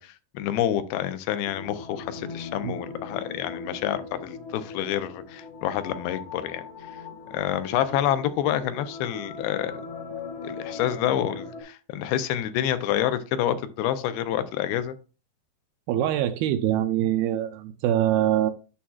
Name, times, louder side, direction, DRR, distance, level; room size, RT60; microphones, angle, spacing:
voice 1, 0.0-6.7 7.3-9.7 10.4-15.0, left 11 dB, 80° left, 2.5 m, -28 dB
sound 1, 1.5-11.6, left 4 dB, 65° left, 1.3 m, -39 dB
voice 2, 15.9-18.5, right 11 dB, 80° right, 2.2 m, -24 dB
8.6 x 6.9 x 2.4 m
omnidirectional pair, 4.6 m